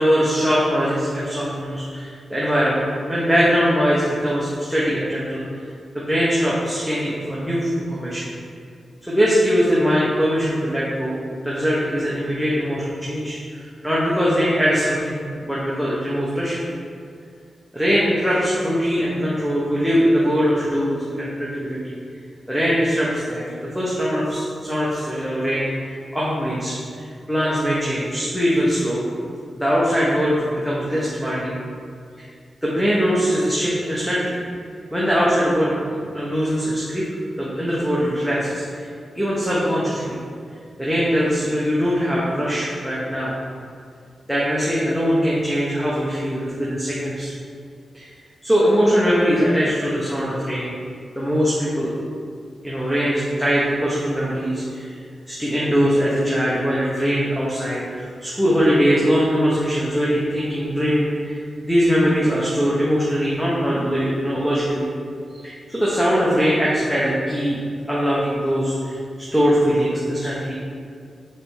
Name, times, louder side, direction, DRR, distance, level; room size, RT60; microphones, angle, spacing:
voice 1, 0.0-5.6 5.9-8.3 9.0-11.2 11.4-16.7 17.7-21.9 22.5-23.4 23.7-29.0 29.6-31.6 32.2-32.3 32.6-34.4 34.9-37.0 37.4-38.6 39.1-40.2 40.8-43.3 44.3-47.3 47.9-48.1 48.4-50.7 51.1-51.9 52.6-54.9 55.3-64.9 65.4-67.6 67.9-70.5, equal, ahead, -7 dB, 0.9 m, -21 dB
7.2 x 3.4 x 5.5 m, 2.3 s
wide cardioid pair, 170°, 0 cm